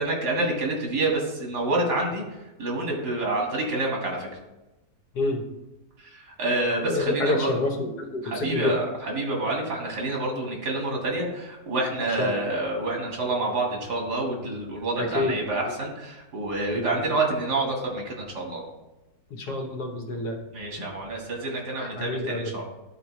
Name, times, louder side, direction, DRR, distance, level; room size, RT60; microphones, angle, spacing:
voice 1, 0.0-2.3 2.6-4.4 6.1-7.6 8.2-18.6 20.5-22.6, right 2 dB, 85° right, -1 dB, 2.3 m, -28 dB
voice 2, 6.8-8.7 12.2-12.5 15.0-15.4 15.7-15.8 16.9-17.0 19.3-20.4 21.8-22.5, left 2 dB, 80° left, 3 dB, 1.6 m, -28 dB
11.0 x 4.3 x 3.1 m, 1.0 s
omnidirectional pair, 1.7 m